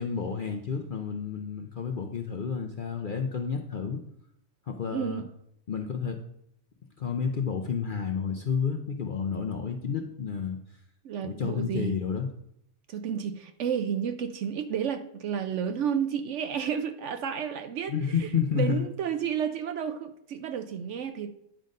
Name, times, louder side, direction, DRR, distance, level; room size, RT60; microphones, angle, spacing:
voice 1, 0.0-4.0 4.7-5.2 5.7-6.2 7.0-10.6 11.2-12.3 17.9-18.8, left 6 dB, 55° left, 0.6 m, -30 dB
voice 2, 4.9-5.3 11.0-12.0 12.9-17.9 18.2-18.3 18.5-21.3, right 8 dB, 65° right, 0.8 m, -31 dB
10.0 x 3.9 x 5.2 m
omnidirectional pair, 1.5 m